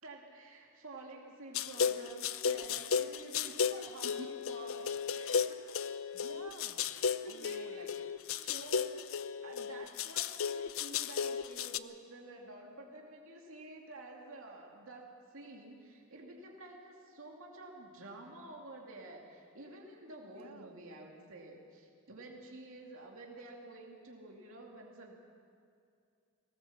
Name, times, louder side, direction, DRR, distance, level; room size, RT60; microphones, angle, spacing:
voice 1, 0.0-5.7 7.2-8.1 8.4-9.0 9.4-25.1, right 2 dB, 65° right, -1 dB, 2.6 m, -50 dB
sound 1, 1.5-11.8, left 6 dB, 65° left, 0.6 m, -35 dB
voice 2, 4.0-4.4 6.1-8.4 20.2-20.8, right 1 dB, 90° right, 6 dB, 1.5 m, -51 dB
20.0 x 18.5 x 7.3 m, 2.4 s
head